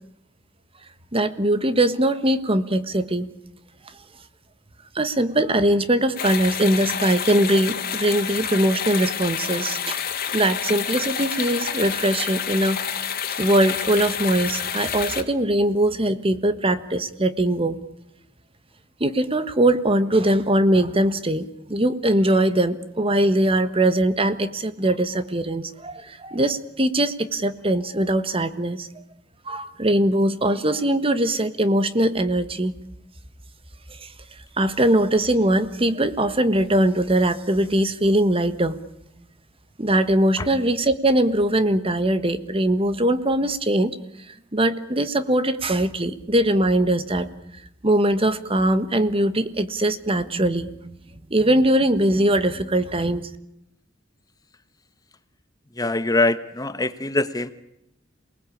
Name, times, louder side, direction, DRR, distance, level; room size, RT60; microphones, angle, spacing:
voice 1, 1.1-3.3 4.9-10.0 10.3-12.8 13.4-17.8 19.0-28.9 29.5-32.7 34.0-34.1 34.6-38.8 39.8-44.0 44.3-47.3 47.8-51.0 51.3-53.3, right 1 dB, 30° right, 12 dB, 1.4 m, -21 dB
sound 1, 6.2-15.2, left 8 dB, 50° left, 2.5 m, -28 dB
voice 2, 55.7-57.5, left 2 dB, 20° left, 12 dB, 1.1 m, -23 dB
28.0 x 20.0 x 8.6 m, 0.83 s
head